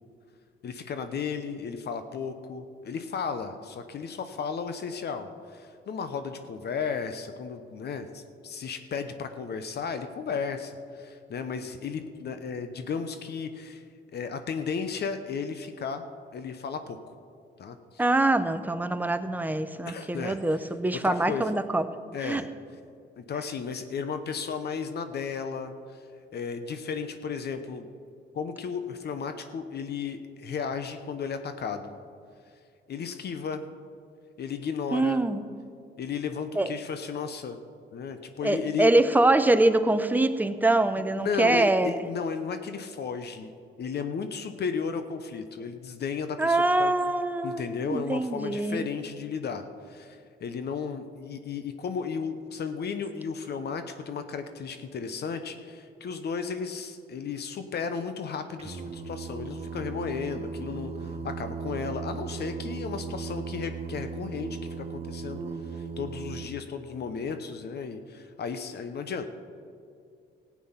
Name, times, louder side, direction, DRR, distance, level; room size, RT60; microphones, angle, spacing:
voice 1, 0.6-13.8 14.1-16.0 16.3-17.2 17.6-18.0 19.9-20.4 20.9-21.5 22.1-22.5 23.2-26.0 26.3-27.9 28.3-31.9 32.9-33.6 34.4-35.2 36.0-37.6 37.9-38.9 41.1-43.5 43.8-46.9 47.4-65.4 65.7-69.2, left 6 dB, 55° left, 9 dB, 0.9 m, -34 dB
voice 2, 18.0-21.9 22.2-22.4 34.9-35.4 36.6-36.7 38.4-42.0 46.4-48.8, right 2 dB, 10° right, 10 dB, 0.7 m, -24 dB
Singing, 58.6-66.5, right 5 dB, 30° right, 1.0 m, -37 dB
15.0 x 8.5 x 5.7 m, 2.4 s
cardioid pair, 90°, 20 cm